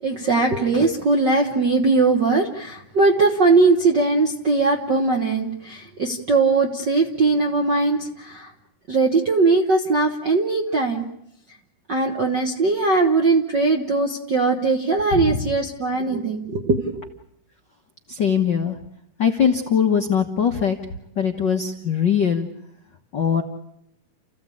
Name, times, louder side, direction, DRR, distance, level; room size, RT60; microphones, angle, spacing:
voice 1, 0.0-8.5 8.9-11.1 11.9-17.1, right 3 dB, 65° right, 3 dB, 1.1 m, -20 dB
voice 2, 18.1-18.8 19.2-20.8 21.2-22.5 23.1-23.4, left 7 dB, 85° left, 4 dB, 1.0 m, -21 dB
30.0 x 15.5 x 8.5 m, 0.80 s
omnidirectional pair, 4.1 m